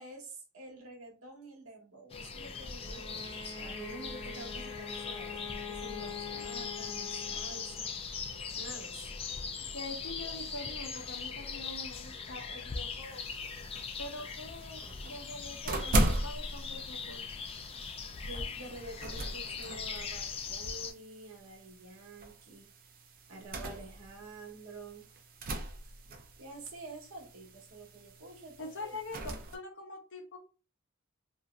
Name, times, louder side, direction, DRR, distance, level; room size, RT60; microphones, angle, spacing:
voice 1, 0.0-8.0 8.5-9.1 18.2-22.7 23.3-25.1 25.8-25.9 26.4-29.0, right 2 dB, 80° right, 1 dB, 1.0 m, -48 dB
sound 1, 2.1-20.9, left 5 dB, 25° left, 0.3 m, -40 dB
Bowed string instrument, 2.8-7.9, left 6 dB, 85° left, 0.9 m, -44 dB
voice 2, 9.6-13.2 14.0-17.3 28.6-29.2 29.5-30.4, left 2 dB, 60° left, 3 dB, 0.8 m, -44 dB
sound 2, 13.0-29.6, right 1 dB, 45° right, 0.5 m, -39 dB
2.9 x 2.6 x 2.3 m, 0.35 s
head